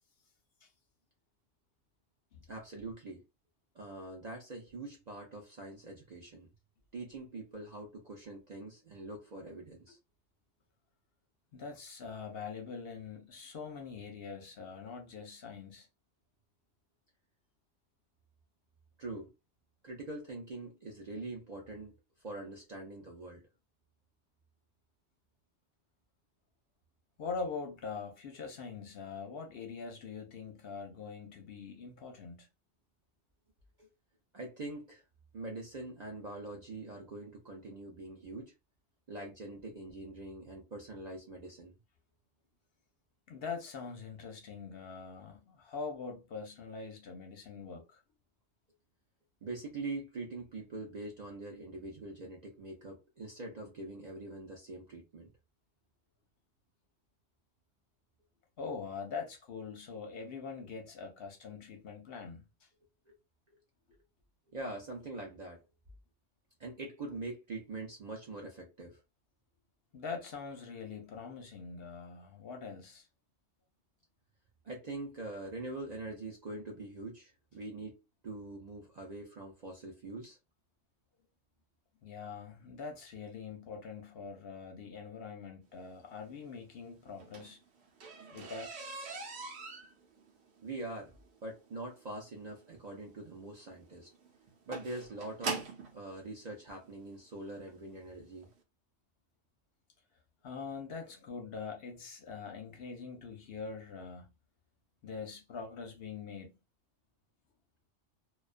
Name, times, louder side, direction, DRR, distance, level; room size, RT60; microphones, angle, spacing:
voice 1, 2.5-3.2 3.7-6.5 6.9-10.0 19.0-19.3 19.8-22.0 22.2-23.4 34.3-35.0 35.3-38.5 39.1-41.7 49.4-55.3 63.1-63.2 64.5-65.6 66.6-69.0 74.6-78.0 78.2-80.4 90.6-91.1 91.4-94.1 94.7-95.6 95.9-98.5, right 2 dB, 50° right, 0.5 m, -43 dB
voice 2, 11.5-15.9 27.2-32.5 43.3-48.0 58.6-62.4 69.9-73.1 82.0-87.6 88.3-88.8 100.4-104.3 105.0-106.5, left 5 dB, 60° left, 0.8 m, -43 dB
sound 1, 87.1-95.9 96.8-96.9 97.5-97.7 98.0-98.1 98.4-98.5, right 3 dB, 65° right, 0.9 m, -42 dB
2.3 x 2.3 x 2.4 m
omnidirectional pair, 1.2 m